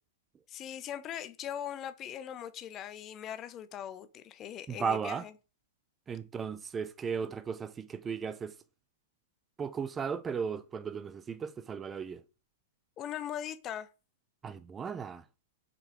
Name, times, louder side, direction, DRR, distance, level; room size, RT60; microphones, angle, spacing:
voice 1, 0.5-5.3 13.0-13.9, left 10 dB, 30° left, 0.7 m, -40 dB
voice 2, 4.7-5.3 6.1-8.5 9.6-12.2 14.4-15.3, right 6 dB, 20° right, 0.4 m, -36 dB
5.5 x 5.3 x 4.9 m
hypercardioid pair, 115°, 0 cm